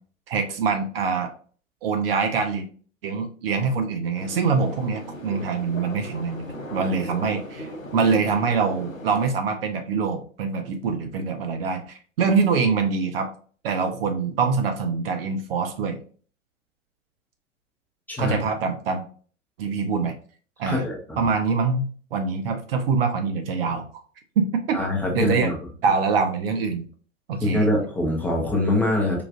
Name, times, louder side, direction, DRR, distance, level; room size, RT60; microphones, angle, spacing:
voice 1, 0.3-1.3 1.8-2.7 3.0-13.3 13.6-16.0 18.2-19.1 19.6-20.1 20.6-20.8 21.2-24.0 24.4-24.8 25.1-25.5 25.8-26.8 27.3-27.7, right 5 dB, 50° right, 5 dB, 0.6 m, -24 dB
sound 1, 4.2-9.3, equal, 85° left, 0.7 m, -37 dB
voice 2, 18.1-18.4 20.7-21.3 24.7-25.6 27.4-29.2, left 1 dB, 5° left, -2 dB, 0.7 m, -24 dB
4.8 x 2.4 x 2.4 m, 0.43 s
figure-of-eight pair, 95°, 39 cm